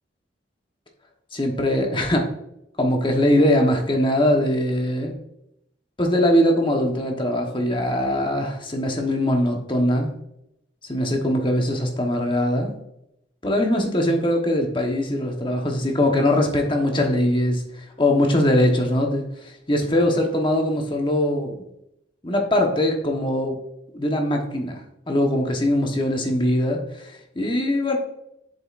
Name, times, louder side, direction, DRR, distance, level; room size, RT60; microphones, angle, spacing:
voice 1, 1.3-2.3 2.8-5.1 6.0-10.1 10.9-12.7 13.4-21.5 22.2-23.6 23.9-24.8 25.1-28.0, left 1 dB, 25° left, 2 dB, 1.1 m, -21 dB
7.9 x 7.1 x 2.5 m, 0.81 s
head